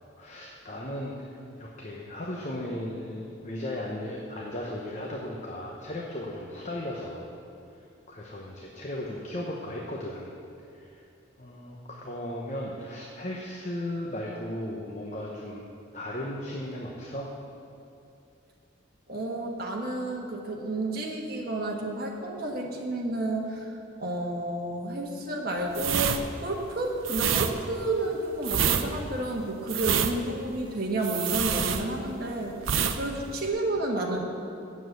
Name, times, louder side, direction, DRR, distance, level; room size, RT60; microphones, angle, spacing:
voice 1, 0.2-1.3 1.6-7.3 8.1-10.3 10.7-11.0 11.4-17.3, left 1 dB, 35° left, -2 dB, 0.9 m, -36 dB
voice 2, 19.1-23.7 24.0-34.2, right 2 dB, 50° right, -1 dB, 1.3 m, -31 dB
sound 1, 25.7-32.3 32.6-33.0 33.3-33.5, right 8 dB, 85° right, 0.6 m, -27 dB
8.7 x 7.3 x 7.9 m, 2.6 s
head